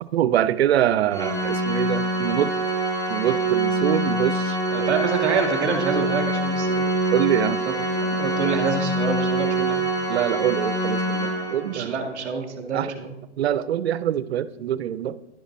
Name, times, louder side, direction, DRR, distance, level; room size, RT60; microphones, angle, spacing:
voice 1, 0.0-2.5 3.1-4.6 7.1-7.6 10.1-12.0 12.7-12.9 13.4-15.2, right 11 dB, 65° right, 16 dB, 0.5 m, -24 dB
Organ, 1.1-11.9, right 2 dB, 10° left, 1.0 m, -25 dB
voice 2, 4.7-6.8 7.9-9.9 11.7-13.1, right 5 dB, 5° right, -7 dB, 0.4 m, -27 dB
10.5 x 8.3 x 2.6 m, 0.92 s
hypercardioid pair, 150°, 34 cm